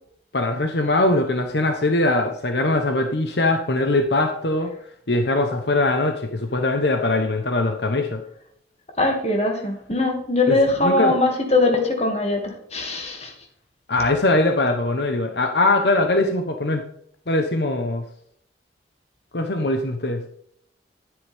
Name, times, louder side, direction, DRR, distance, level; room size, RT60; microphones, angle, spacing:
voice 1, 0.3-4.7 5.1-8.2 10.5-11.2 13.9-16.8 17.3-18.0 19.3-20.2, left 2 dB, 70° left, 5 dB, 1.1 m, -21 dB
voice 2, 9.0-13.3, left 2 dB, 35° left, 3 dB, 2.4 m, -21 dB
11.0 x 9.8 x 3.6 m, 0.67 s
head